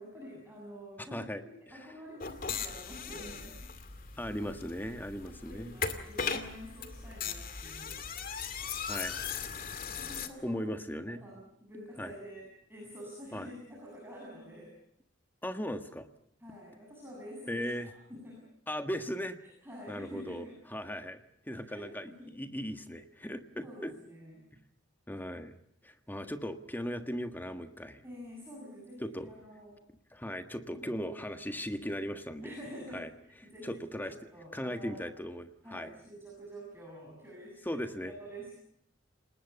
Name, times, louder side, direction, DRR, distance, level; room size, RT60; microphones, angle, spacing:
voice 1, 0.0-3.6 5.3-8.0 9.9-10.6 11.1-14.7 16.4-18.5 19.6-20.6 21.6-22.3 23.6-24.5 28.0-29.7 30.7-30.9 32.4-33.8 34.3-35.0 35.6-38.5, equal, 10° right, -4 dB, 8.0 m, -48 dB
voice 2, 1.0-1.9 4.2-5.7 8.9-9.2 10.4-11.2 12.0-12.1 13.3-13.5 15.4-16.1 17.5-17.9 18.7-19.4 19.9-23.9 25.1-25.5 25.8-28.0 29.0-29.3 30.1-32.6 32.9-33.1 33.4-34.1 34.5-35.9 37.6-38.1, equal, 10° left, 7 dB, 1.5 m, -38 dB
sound 1, 2.2-10.3, left 6 dB, 50° left, 2.4 m, -38 dB
29.0 x 20.0 x 6.9 m, 0.69 s
head